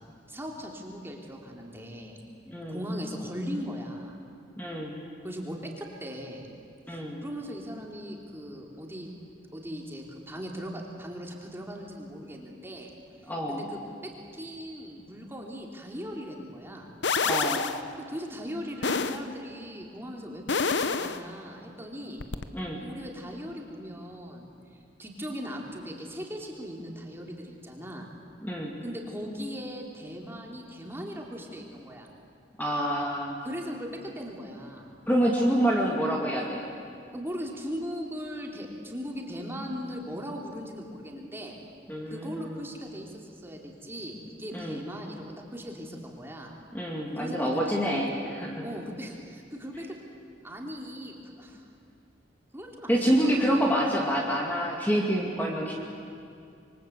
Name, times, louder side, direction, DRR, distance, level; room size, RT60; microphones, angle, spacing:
voice 1, 0.3-2.2 2.7-4.2 5.2-6.5 6.9-9.1 9.5-12.9 13.2-16.9 18.0-22.2 22.8-28.1 28.8-32.1 33.4-34.9 37.1-41.6 42.1-46.5 47.2-47.4 47.6-48.0 48.6-50.0 50.4-51.7 52.5-53.6, equal, 15° right, 0 dB, 3.1 m, -39 dB
voice 2, 2.5-2.8 4.6-5.0 6.9-7.2 13.3-13.6 17.2-17.7 22.5-22.8 28.4-28.7 32.6-33.4 35.1-36.6 41.9-42.6 44.5-44.8 46.7-48.6 52.9-55.7, equal, 10° left, -2 dB, 2.4 m, -27 dB
sound 1, 17.0-17.8 18.8-19.2 20.5-21.2 22.2-22.4, left 5 dB, 70° left, 0.9 m, -27 dB
26.5 x 23.0 x 8.2 m, 2.4 s
head